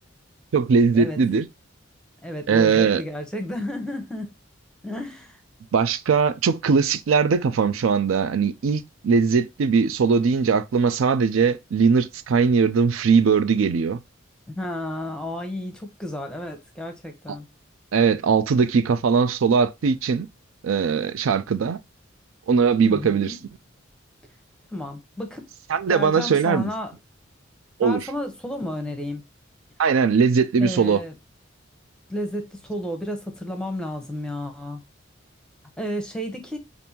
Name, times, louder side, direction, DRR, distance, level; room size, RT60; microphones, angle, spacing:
voice 1, 0.5-1.5 2.5-3.0 5.7-14.0 17.9-20.3 20.6-21.8 22.5-23.4 25.7-26.7 27.8-28.1 29.8-31.0, right 5 dB, 85° right, 0.4 m, -20 dB
voice 2, 2.2-4.3 4.8-5.4 14.5-17.5 22.8-23.4 24.7-25.4 25.9-26.9 27.8-29.2 30.6-31.1 32.1-34.8 35.8-36.6, left 1 dB, 5° left, 0.7 m, -32 dB
5.2 x 2.6 x 2.8 m
head